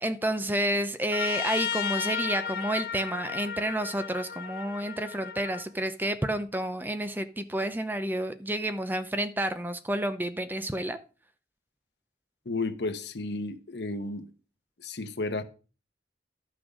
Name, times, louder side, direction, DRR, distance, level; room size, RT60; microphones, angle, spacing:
voice 1, 0.0-11.0, right 1 dB, 10° right, 0.5 m, -30 dB
Trumpet, 1.1-5.7, left 8 dB, 55° left, 0.6 m, -34 dB
voice 2, 12.4-14.3 14.8-15.4, left 2 dB, 75° left, 1.0 m, -32 dB
12.0 x 6.2 x 4.9 m
head